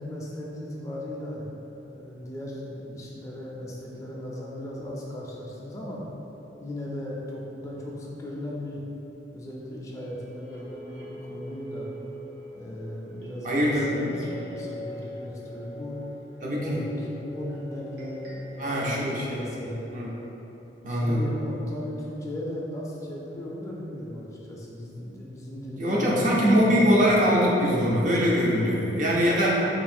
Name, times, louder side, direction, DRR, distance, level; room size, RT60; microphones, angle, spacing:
voice 1, 0.0-1.5 1.8-6.0 6.6-8.8 9.3-11.9 12.5-16.0 16.4-19.9 20.9-27.4, left 1 dB, 20° left, -4 dB, 0.5 m, -37 dB
sound 1, 10.0-20.3, left 1 dB, 75° right, 1.0 m, -42 dB
voice 2, 13.4-14.1 16.4-16.8 18.6-19.4 19.9-20.1 20.8-21.3 25.8-29.7, equal, 45° right, -5 dB, 0.6 m, -22 dB
3.1 x 2.6 x 4.2 m, 3.0 s
head